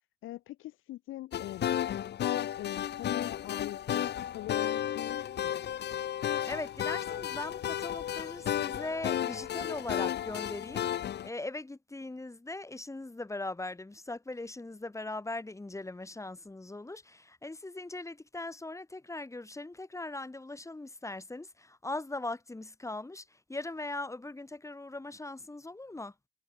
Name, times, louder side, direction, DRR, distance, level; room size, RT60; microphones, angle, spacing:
voice 1, 0.2-1.6 2.2-4.1 4.3-5.2 5.4-5.6, left 15 dB, 85° left, 1.7 m, -41 dB
sound 1, 1.3-11.3, left 10 dB, 60° left, 0.9 m, -33 dB
voice 2, 6.5-26.1, left 2 dB, 15° left, 4.4 m, -40 dB
cardioid pair, 90°, 20 cm